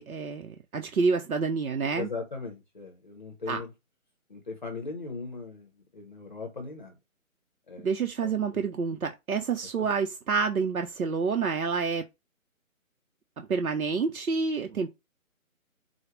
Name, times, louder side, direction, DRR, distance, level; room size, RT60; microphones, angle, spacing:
voice 1, 0.0-2.1 3.5-3.6 7.8-12.0 13.4-14.9, right 5 dB, 90° right, 0.6 m, -28 dB
voice 2, 2.0-3.7 4.3-6.9 7.7-7.9 8.5-8.6, left 4 dB, 35° left, 0.6 m, -38 dB
4.6 x 2.1 x 2.9 m
figure-of-eight pair, 150°, 42 cm